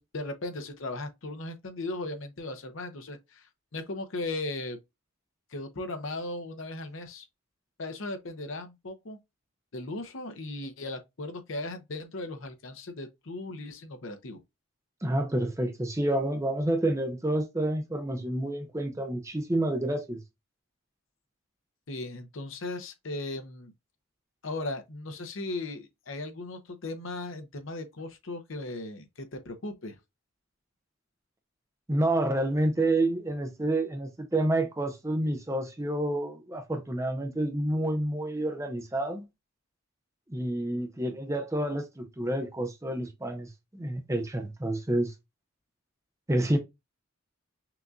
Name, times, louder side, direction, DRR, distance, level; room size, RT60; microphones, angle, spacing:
voice 1, 0.0-4.8 5.5-7.3 7.8-9.2 9.7-14.4 21.9-23.7 24.4-30.0 40.7-40.9, left 2 dB, 65° left, 0.7 m, -37 dB
voice 2, 15.0-20.2 31.9-39.3 40.3-43.5 43.7-45.1 46.3-46.6, right 1 dB, 15° right, 0.6 m, -29 dB
5.8 x 2.6 x 2.3 m
head